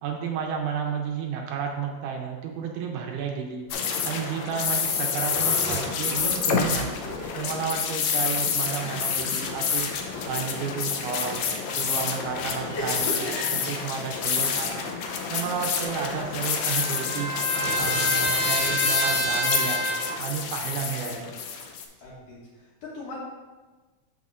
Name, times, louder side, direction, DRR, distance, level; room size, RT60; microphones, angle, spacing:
voice 1, 0.0-3.7 4.0-7.0 7.3-9.9 10.3-14.8 15.3-17.3 17.7-19.8 20.2-21.3, right 6 dB, 80° right, 1 dB, 2.1 m, -32 dB
sound 1, 3.7-21.9, left 6 dB, 75° left, 1.7 m, -28 dB
sound 2, 3.7-3.8 4.3-4.4 4.6-7.6 7.8-7.9 8.2-21.0 21.6-21.7 22.1-22.2, equal, 20° left, 1.8 m, -40 dB
voice 2, 12.7-13.6 20.9-21.3 22.0-23.2, left 1 dB, 60° left, -5 dB, 1.9 m, -36 dB
Trumpet, 15.8-20.2, right 1 dB, 45° right, 2.2 m, -29 dB
12.5 x 4.2 x 2.5 m, 1.3 s
omnidirectional pair, 3.8 m